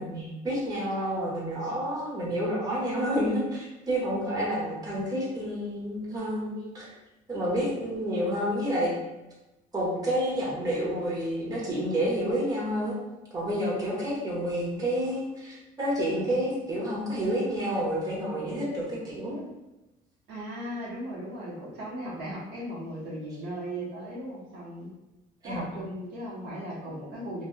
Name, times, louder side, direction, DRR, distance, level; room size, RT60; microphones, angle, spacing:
voice 1, 0.0-6.9 7.3-9.0 9.7-12.9 13.3-19.4 25.4-25.7, equal, 20° right, -6 dB, 1.2 m, -29 dB
voice 2, 13.6-14.0 20.3-24.9 25.4-27.4, equal, 75° right, -5 dB, 1.0 m, -37 dB
3.0 x 2.6 x 2.3 m, 0.98 s
cardioid pair, 110°, 17 cm